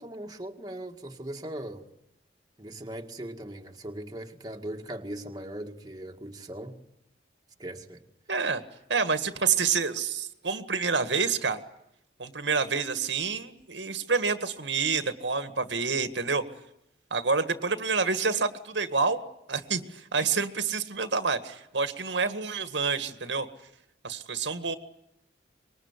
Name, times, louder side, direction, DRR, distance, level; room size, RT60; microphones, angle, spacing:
voice 1, 0.0-1.8 2.6-6.8 7.6-8.0, right 1 dB, 20° right, 1.9 m, -39 dB
voice 2, 8.3-8.6 8.9-11.6 12.2-16.4 17.1-19.2 19.5-23.5 24.0-24.8, right 5 dB, 80° right, 1.9 m, -28 dB
25.5 x 22.0 x 9.8 m
head